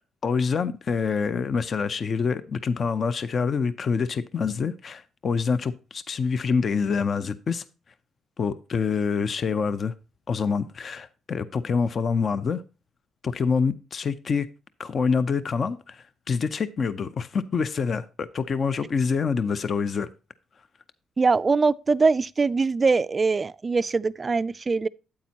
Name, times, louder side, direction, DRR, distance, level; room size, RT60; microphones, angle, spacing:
voice 1, 0.2-7.6 8.4-9.9 10.3-12.6 13.2-14.5 14.8-20.1, left 5 dB, 45° left, 0.6 m, -26 dB
voice 2, 21.2-24.9, right 4 dB, 30° right, 0.3 m, -22 dB
8.7 x 8.4 x 2.9 m
cardioid pair, 90°, 0 cm